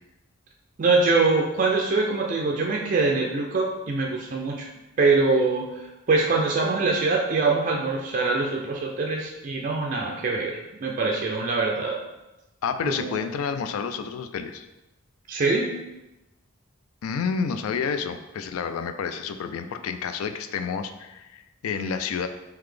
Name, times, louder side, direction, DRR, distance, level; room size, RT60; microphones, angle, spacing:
voice 1, 0.8-4.7 5.0-10.5 10.8-12.0 12.9-13.2 15.3-15.7, right 3 dB, 35° right, -1 dB, 0.3 m, -23 dB
voice 2, 12.6-14.7 17.0-22.3, left 6 dB, 75° left, 9 dB, 0.3 m, -29 dB
3.9 x 2.8 x 3.2 m, 1.0 s
head